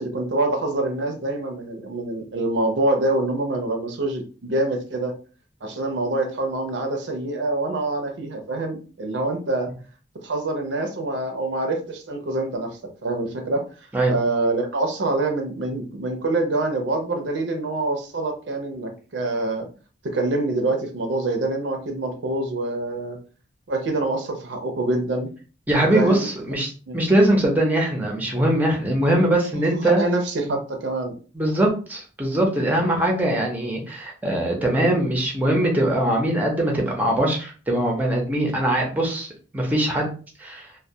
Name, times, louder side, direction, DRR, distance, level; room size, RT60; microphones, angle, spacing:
voice 1, 0.0-5.2 5.6-9.7 10.2-12.7 13.0-13.6 14.1-19.7 20.0-23.2 23.7-25.3 25.9-26.3 26.9-27.0 29.8-31.2 32.4-32.5, right 2 dB, 70° right, 4 dB, 0.5 m, -25 dB
voice 2, 25.7-30.1 30.4-30.5 31.3-39.3 39.5-40.1 40.4-40.6, right 1 dB, 10° right, 0 dB, 0.6 m, -21 dB
2.2 x 2.2 x 2.7 m, 0.37 s
head